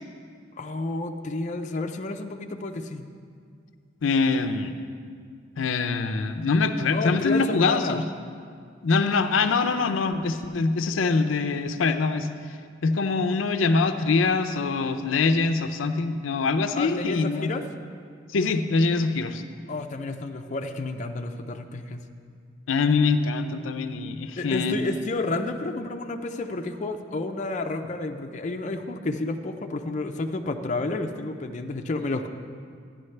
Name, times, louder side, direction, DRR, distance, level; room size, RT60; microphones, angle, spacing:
voice 1, 0.6-3.1 6.9-8.0 16.7-17.7 19.7-22.0 24.4-32.3, left 2 dB, 40° left, 5 dB, 0.5 m, -30 dB
voice 2, 4.0-4.7 5.6-8.0 8.8-12.3 12.8-17.5 18.3-19.4 22.7-24.8, left 4 dB, 90° left, 8 dB, 0.5 m, -24 dB
13.0 x 10.0 x 3.3 m, 2.1 s
head